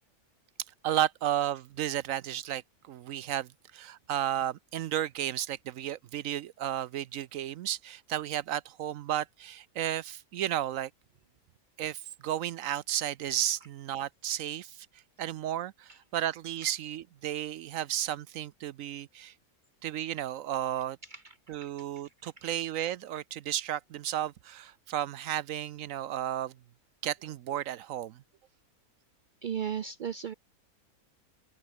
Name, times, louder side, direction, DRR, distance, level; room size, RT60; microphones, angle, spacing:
voice 1, 0.8-2.6 2.9-10.9 11.8-14.9 15.2-19.3 19.8-21.0 21.5-26.5 27.0-28.2, right 11 dB, 70° right, 0.9 m, -33 dB
voice 2, 21.1-21.7 29.4-30.3, right 8 dB, 85° right, 0.4 m, -36 dB
open air
omnidirectional pair, 1.6 m